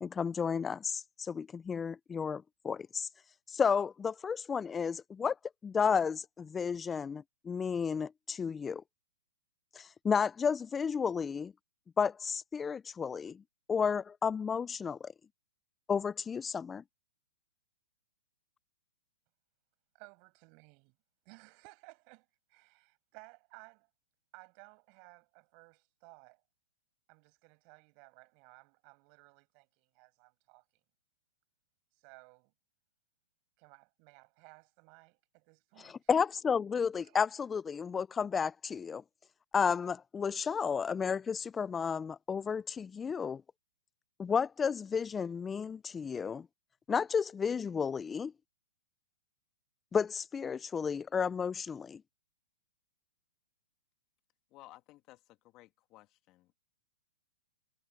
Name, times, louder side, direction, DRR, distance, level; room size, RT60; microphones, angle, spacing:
voice 1, 0.0-3.1 3.5-5.4 5.6-8.8 9.7-11.5 12.0-13.4 13.7-15.1 15.9-16.8 35.8-39.0 39.5-43.4 44.2-46.5 46.9-48.3 49.9-52.0, left 6 dB, 15° left, 0.4 m, -32 dB
voice 2, 19.9-21.0 21.2-23.9 24.3-26.4 27.1-30.6 31.9-32.5 33.6-36.1 37.0-37.2, right 35 dB, 40° right, 6.6 m, -58 dB
voice 3, 54.5-56.6, left 17 dB, 35° left, 2.1 m, -57 dB
hypercardioid pair, 135°, 0 cm